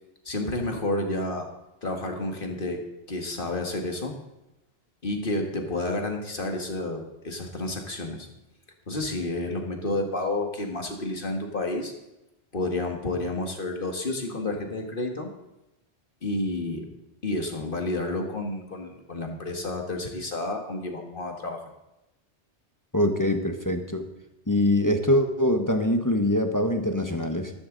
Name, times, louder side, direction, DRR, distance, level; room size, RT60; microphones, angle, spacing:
voice 1, 0.3-1.5 1.8-2.8 3.1-4.1 5.0-8.3 8.9-11.9 12.5-15.3 16.2-16.9 17.2-21.6, left 2 dB, 50° left, 3 dB, 2.0 m, -30 dB
voice 2, 22.9-24.1 24.5-27.5, left 1 dB, 20° left, 5 dB, 1.0 m, -23 dB
13.5 x 13.5 x 4.0 m, 0.93 s
omnidirectional pair, 1.2 m